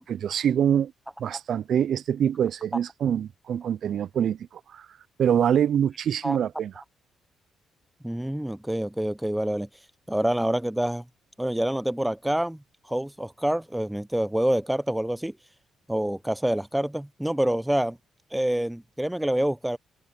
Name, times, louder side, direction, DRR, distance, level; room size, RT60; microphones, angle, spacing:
voice 1, 0.1-0.9 1.2-4.9 5.2-6.7, right 9 dB, 65° right, 0.4 m, -25 dB
voice 2, 8.0-9.7 10.1-11.0 11.4-12.6 12.9-15.3 15.9-18.0 18.3-19.8, right 1 dB, 5° right, 0.7 m, -26 dB
cardioid pair, 90°, 0 cm